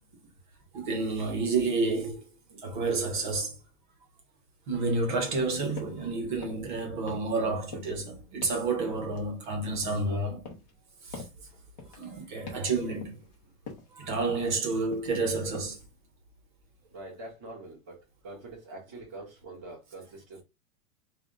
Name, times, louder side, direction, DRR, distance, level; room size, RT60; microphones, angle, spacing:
voice 1, 0.7-2.2 2.6-3.5 4.7-10.4 11.0-11.2 12.0-13.2 13.9-15.8, right 3 dB, 30° right, 1.0 m, -30 dB
sound 1, 5.8-6.0 6.4-6.7 7.1-7.4 7.7-8.0 8.4-8.7 9.0-10.0 10.4-10.8 11.1-11.4 11.8-12.1 12.5-12.7 13.0-13.4 13.7-13.9 14.3-14.6 14.9-15.2 15.5-15.8, left 4 dB, 30° left, 0.8 m, -44 dB
voice 2, 16.9-18.0 18.2-20.4, right 2 dB, 10° right, 0.5 m, -44 dB
5.6 x 2.4 x 2.5 m
supercardioid pair, 180°, 45 cm